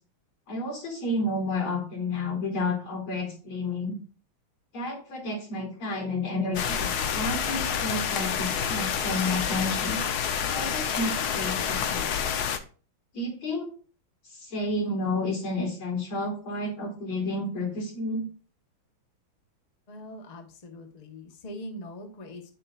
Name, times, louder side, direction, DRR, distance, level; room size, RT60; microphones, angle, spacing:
voice 1, 0.5-4.0 4.7-10.0 10.5-12.1 13.1-13.7 14.3-18.2, left 2 dB, 80° left, -1 dB, 3.3 m, -31 dB
sound 1, 6.5-12.6, left 7 dB, 65° left, 1.1 m, -28 dB
voice 2, 19.9-22.5, left 1 dB, 30° left, 2 dB, 0.9 m, -42 dB
8.2 x 6.7 x 2.4 m, 0.38 s
omnidirectional pair, 2.2 m